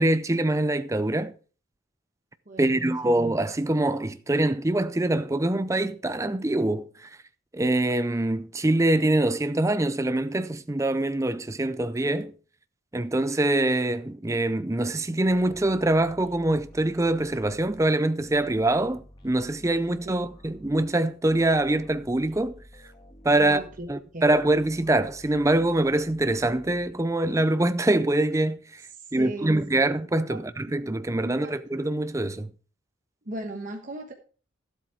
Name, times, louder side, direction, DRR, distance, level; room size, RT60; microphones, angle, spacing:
voice 1, 0.0-1.3 2.6-7.1 7.5-12.3 12.9-22.6 23.2-23.6 23.9-28.8 29.1-32.5, right 1 dB, 15° right, 0.5 m, -24 dB
voice 2, 2.5-3.3 20.0-20.3 23.3-24.4 29.0-29.8 30.3-30.4 31.2-31.5 33.2-34.1, right 1 dB, 40° right, 1.2 m, -37 dB
sound 1, 15.2-27.5, equal, 25° left, 1.5 m, -51 dB
12.5 x 8.0 x 4.5 m
head